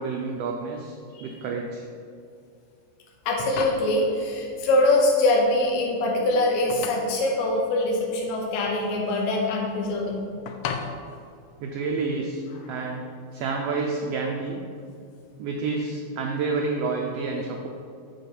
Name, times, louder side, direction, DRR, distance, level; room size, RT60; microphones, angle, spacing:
voice 1, 0.0-1.9 11.6-13.0 13.3-14.6 15.4-17.7, right 4 dB, 75° right, 0 dB, 1.5 m, -29 dB
sound 1, 3.1-12.1, left 6 dB, 85° left, 1.3 m, -38 dB
voice 2, 3.3-10.2, left 2 dB, 70° left, -1 dB, 2.2 m, -23 dB
6.0 x 5.3 x 6.8 m, 2.3 s
omnidirectional pair, 3.4 m